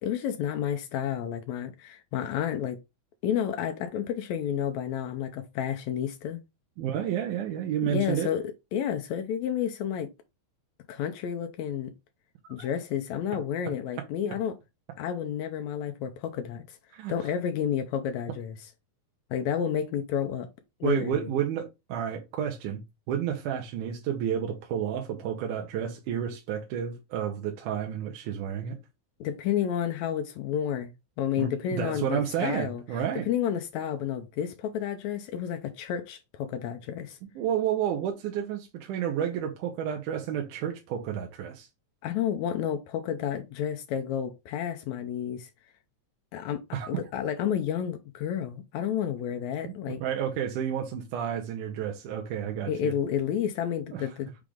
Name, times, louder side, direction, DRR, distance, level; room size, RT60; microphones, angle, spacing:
voice 1, 0.0-2.8 3.2-6.4 7.8-8.4 8.7-10.1 10.9-11.9 12.5-14.6 15.0-16.8 17.1-18.6 19.3-20.5 20.8-21.3 29.2-30.9 31.2-32.8 33.3-37.2 42.0-45.5 46.3-46.6 46.9-50.0 52.7-54.4, left 9 dB, 80° left, 1.7 m, -30 dB
voice 2, 6.8-8.3 12.4-12.7 16.9-17.1 20.8-22.8 23.1-28.8 31.4-33.3 37.4-41.7 46.7-46.9 49.6-49.7 50.0-52.9 53.9-54.1, right 9 dB, 85° right, 2.2 m, -31 dB
6.0 x 2.4 x 3.4 m
omnidirectional pair, 3.6 m